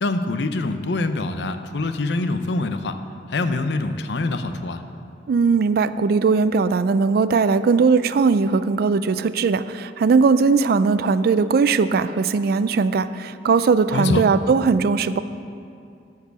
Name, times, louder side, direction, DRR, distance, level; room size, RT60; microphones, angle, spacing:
voice 1, 0.0-3.0 3.3-4.8 13.9-14.2, left 2 dB, 70° left, 8 dB, 0.6 m, -24 dB
voice 2, 5.3-15.2, right 4 dB, 55° right, 13 dB, 0.3 m, -19 dB
12.5 x 4.7 x 6.9 m, 2.5 s
head